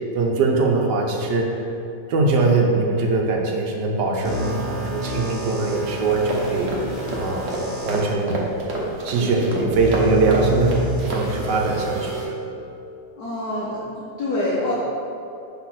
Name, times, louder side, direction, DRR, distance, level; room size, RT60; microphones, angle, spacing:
voice 1, 0.1-1.5 2.1-6.7 7.1-7.5 7.8-8.4 9.0-10.8 11.1-12.3, right 3 dB, 75° right, 1 dB, 1.4 m, -21 dB
sound 1, 4.2-8.0 8.7-8.8 9.7-12.2, equal, 30° right, 1.7 m, -29 dB
sound 2, 6.3-11.2, right 2 dB, 50° right, 1.3 m, -28 dB
voice 2, 13.2-14.7, left 1 dB, 65° left, -8 dB, 1.5 m, -26 dB
5.8 x 3.9 x 6.0 m, 2.7 s
omnidirectional pair, 1.8 m